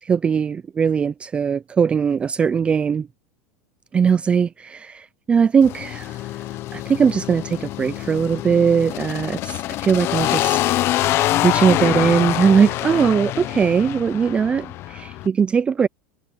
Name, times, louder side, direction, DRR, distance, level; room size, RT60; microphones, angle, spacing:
voice 1, 0.0-3.1 3.9-6.3 6.7-10.6 11.4-15.9, right 6 dB, 20° right, 0.4 m, -20 dB
sound 1, 5.6-15.3, left 15 dB, 45° left, 0.8 m, -25 dB
supercardioid pair, 135°, 6 cm